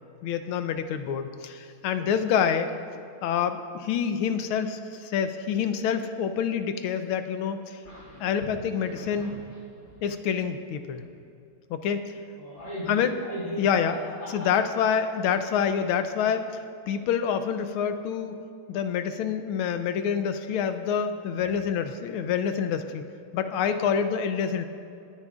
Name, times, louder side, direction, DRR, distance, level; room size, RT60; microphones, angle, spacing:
voice 1, 0.2-2.7 3.2-7.8 8.2-9.4 10.0-11.0 11.7-12.2 12.9-13.2 13.6-14.0 14.3-18.4 18.7-23.0 23.3-24.7, left 7 dB, 90° left, 9 dB, 1.5 m, -27 dB
voice 2, 7.8-8.2 8.5-9.4 9.9-10.0 12.4-13.6 14.2-14.5 23.6-23.7, equal, 40° left, -9 dB, 3.1 m, -38 dB
22.0 x 9.7 x 2.4 m, 2.6 s
omnidirectional pair, 2.3 m